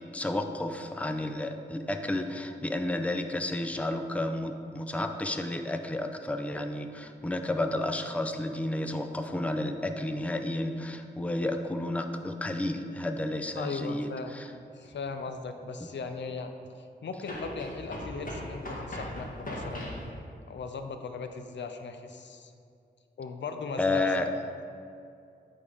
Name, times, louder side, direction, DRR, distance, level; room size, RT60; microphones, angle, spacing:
voice 1, 0.0-14.5 23.8-24.3, left 1 dB, 5° left, 6 dB, 0.5 m, -31 dB
voice 2, 13.6-14.3 14.7-16.5 16.8-22.5 23.2-24.2, left 4 dB, 75° left, 7 dB, 0.5 m, -38 dB
sound 1, 14.8-14.9 17.2-20.1, equal, 50° left, 1.6 m, -38 dB
8.8 x 3.5 x 4.9 m, 2.5 s
cardioid pair, 70°, 19 cm